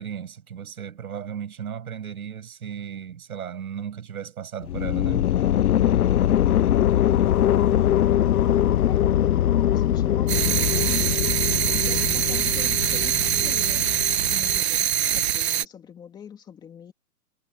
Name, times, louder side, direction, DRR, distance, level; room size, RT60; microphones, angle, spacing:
voice 1, 0.0-5.3, right 8 dB, 65° right, 7.7 m, -35 dB
sound 1, 4.6-14.6, left 11 dB, 70° left, 0.8 m, -22 dB
voice 2, 8.9-11.0 11.6-13.9 14.2-16.9, left 7 dB, 10° left, 2.6 m, -42 dB
sound 2, 10.3-15.6, right 11 dB, 45° right, 1.5 m, -24 dB
hypercardioid pair, 170°, 46 cm